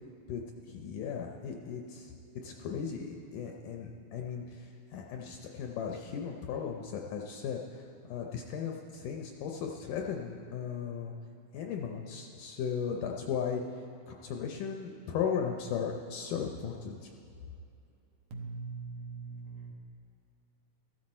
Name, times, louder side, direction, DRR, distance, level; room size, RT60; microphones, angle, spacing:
voice 1, 0.7-2.1 2.4-7.8 8.1-11.1 11.5-13.6 14.1-17.1, left 7 dB, 75° left, 1 dB, 2.0 m, -36 dB
voice 2, 18.3-19.7, right 4 dB, 65° right, 0 dB, 2.6 m, -41 dB
14.0 x 14.0 x 4.3 m, 2.6 s
omnidirectional pair, 4.3 m